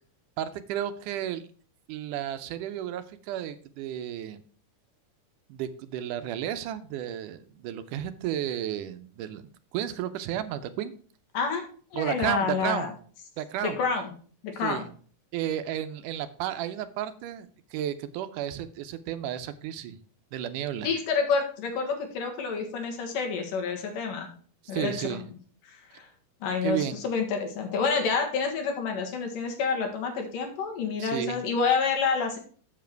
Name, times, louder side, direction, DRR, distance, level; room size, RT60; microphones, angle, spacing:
voice 1, 0.4-1.4 1.9-4.4 5.5-10.9 11.9-12.9 13.4-13.8 14.6-14.9 15.3-20.0 20.3-20.9 24.7-25.2 26.6-27.0 31.0-31.4, right 11 dB, 80° right, 11 dB, 2.2 m, -32 dB
voice 2, 11.9-12.9 13.6-14.1 14.4-14.9 20.8-24.3 24.7-25.2 25.6-26.1 26.4-32.4, left 5 dB, 90° left, 3 dB, 3.4 m, -28 dB
7.6 x 7.3 x 4.5 m, 0.43 s
omnidirectional pair, 3.7 m